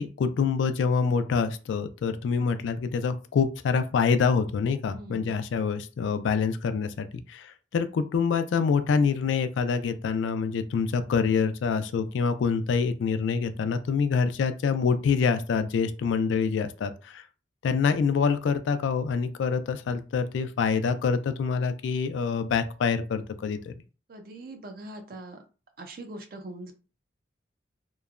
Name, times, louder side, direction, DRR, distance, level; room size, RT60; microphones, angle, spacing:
voice 1, 0.0-17.2 17.6-23.7, left 5 dB, 90° left, 10 dB, 0.3 m, -26 dB
voice 2, 4.8-5.3 24.1-25.4 25.8-26.7, right 2 dB, 50° right, 6 dB, 0.4 m, -42 dB
3.0 x 2.1 x 2.4 m, 0.34 s
head